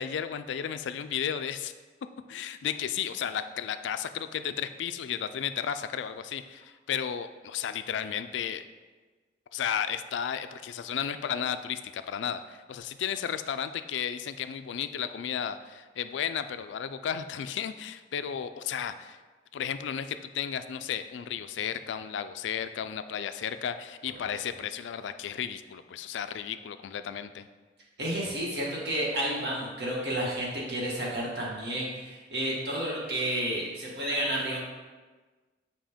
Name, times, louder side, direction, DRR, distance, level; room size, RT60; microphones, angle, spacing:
voice 1, 0.0-1.7 2.3-8.6 9.5-19.2 19.5-27.5, left 8 dB, 85° left, 11 dB, 0.3 m, -33 dB
voice 2, 28.0-34.6, right 1 dB, 65° right, -4 dB, 1.6 m, -31 dB
7.5 x 2.8 x 5.0 m, 1.3 s
head